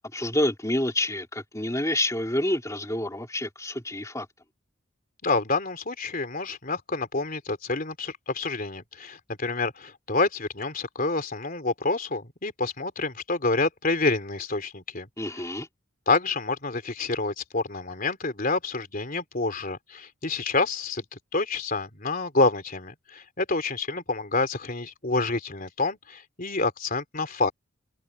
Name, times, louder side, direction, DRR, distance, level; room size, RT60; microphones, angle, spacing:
voice 1, 0.1-4.3 15.2-15.7, left 1 dB, 15° left, 3.3 m, -28 dB
voice 2, 5.2-15.1 16.1-27.5, left 3 dB, 40° left, 3.6 m, -28 dB
open air
head